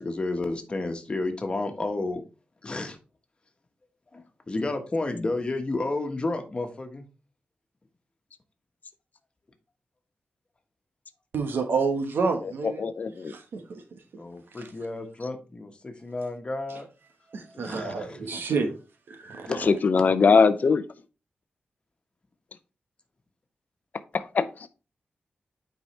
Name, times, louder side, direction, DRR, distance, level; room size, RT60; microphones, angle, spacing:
voice 1, 0.0-2.2 2.6-3.0 4.1-7.0 14.2-16.9 17.5-18.3 19.5-19.6, left 2 dB, 30° left, 1.3 m, -31 dB
voice 2, 11.3-12.9 13.3-13.8 14.6-14.7 17.3-18.7 19.1-19.7, right 4 dB, 90° right, 1.2 m, -29 dB
voice 3, 12.8-13.3 19.7-20.8 24.3-24.5, left 5 dB, 50° left, 0.6 m, -20 dB
8.9 x 4.7 x 3.2 m
wide cardioid pair, 140°, 4 cm